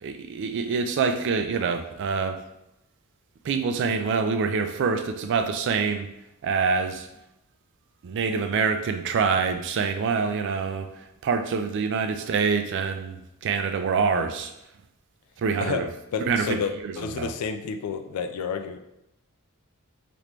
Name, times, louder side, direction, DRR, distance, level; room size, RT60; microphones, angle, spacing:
voice 1, 0.0-2.4 3.4-6.1 6.4-7.1 8.0-14.5 15.4-15.9 16.3-17.3, right 5 dB, 55° right, 7 dB, 0.3 m, -26 dB
voice 2, 16.1-18.8, left 5 dB, 85° left, 7 dB, 0.3 m, -30 dB
2.9 x 2.5 x 3.3 m, 0.85 s
head